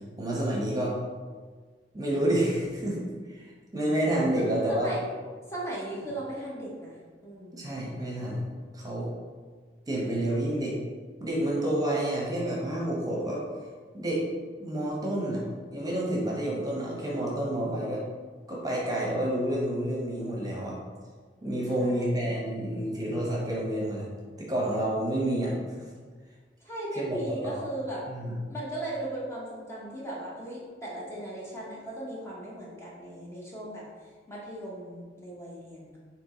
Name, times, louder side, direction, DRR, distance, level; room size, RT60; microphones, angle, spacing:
voice 1, 0.2-1.0 1.9-3.5 3.7-4.9 7.5-8.4 8.7-9.1 9.9-10.8 11.2-13.4 13.9-14.2 14.6-15.4 15.7-18.0 18.5-20.8 21.4-24.1 24.4-25.9 27.0-27.6 28.1-28.4, right 1 dB, 20° right, -4 dB, 0.9 m, -29 dB
voice 2, 4.3-5.1 5.5-7.7 21.8-22.3 26.6-28.1 28.5-33.9 34.3-36.0, right 1 dB, 15° left, -5 dB, 0.8 m, -37 dB
4.6 x 2.9 x 3.7 m, 1.5 s
head